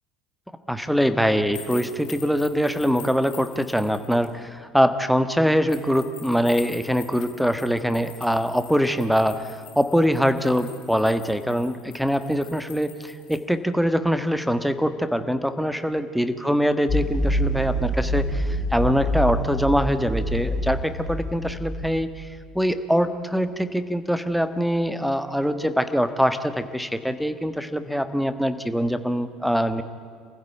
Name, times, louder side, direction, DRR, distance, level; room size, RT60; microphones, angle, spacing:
voice 1, 0.7-22.3 22.5-29.8, equal, ahead, 11 dB, 1.5 m, -23 dB
sound 1, 1.5-4.3 5.7-13.4, left 10 dB, 65° left, 2.5 m, -45 dB
sound 2, 16.9-22.1, equal, 25° left, 5.4 m, -26 dB
27.0 x 15.5 x 9.1 m, 2.3 s
figure-of-eight pair, 60°, 0 cm